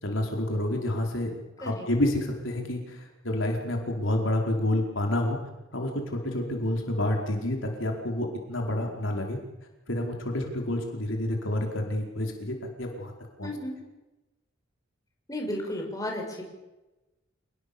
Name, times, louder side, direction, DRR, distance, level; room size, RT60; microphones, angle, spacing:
voice 1, 0.0-1.3 1.6-5.4 5.7-9.4 9.9-13.1 13.4-13.5, left 1 dB, 70° left, 1 dB, 4.8 m, -29 dB
voice 2, 13.4-13.8 15.3-16.4, left 1 dB, 15° left, 1 dB, 6.3 m, -33 dB
28.5 x 20.0 x 7.1 m, 1.0 s
head